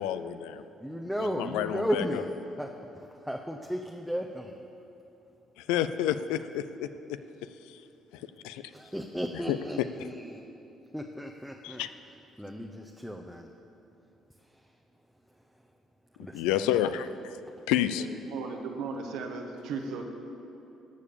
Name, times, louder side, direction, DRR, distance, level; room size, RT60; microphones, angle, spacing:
voice 1, 0.0-0.6 1.2-2.2 5.6-7.2 7.7-7.8 8.1-8.6 9.5-10.1 11.6-11.9 16.3-17.4 17.7-18.1, left 11 dB, 85° left, 12 dB, 0.3 m, -30 dB
voice 2, 0.8-2.3 2.6-2.7 3.2-4.6 8.7-10.4 10.9-11.8 12.4-13.5 16.2-16.9, equal, ahead, 2 dB, 0.7 m, -34 dB
voice 3, 18.0-20.0, right 4 dB, 80° right, 3 dB, 1.0 m, -36 dB
14.0 x 5.1 x 6.9 m, 2.9 s
supercardioid pair, 60°, 0 cm